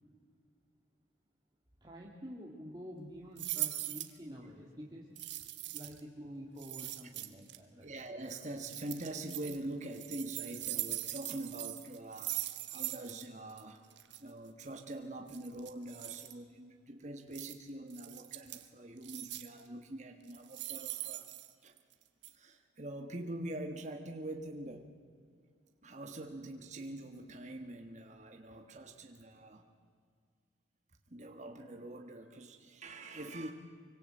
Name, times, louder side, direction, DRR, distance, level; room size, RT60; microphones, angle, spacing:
voice 1, 1.8-5.1 5.7-7.9, equal, 20° right, -3 dB, 2.3 m, -48 dB
sound 1, 3.4-4.2 5.2-6.0 6.6-7.6 8.7-9.6 9.9-13.2 13.5-13.6 13.9-14.2 15.3-16.3 17.3-17.5 17.9-18.6 19.0-19.6 20.3-21.9 22.2-22.3, right 15 dB, 65° right, 1.6 m, -41 dB
voice 2, 7.8-12.4 12.7-13.8 14.2-21.3 21.6-21.8 22.3-24.9 25.8-29.7 31.1-33.5, right 1 dB, 35° right, 4 dB, 1.4 m, -44 dB
25.0 x 24.5 x 7.8 m, 2.1 s
head